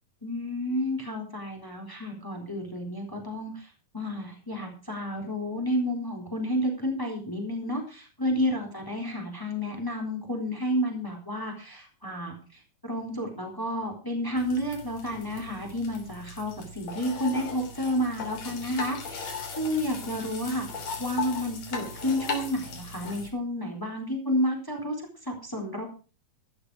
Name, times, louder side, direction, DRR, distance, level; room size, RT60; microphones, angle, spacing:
voice 1, 0.2-3.7 3.9-25.0 25.2-25.9, equal, 5° left, 2 dB, 3.7 m, -31 dB
sound 1, 14.4-23.3, left 4 dB, 90° left, 4.6 m, -38 dB
14.5 x 11.5 x 4.8 m, 0.36 s
omnidirectional pair, 3.4 m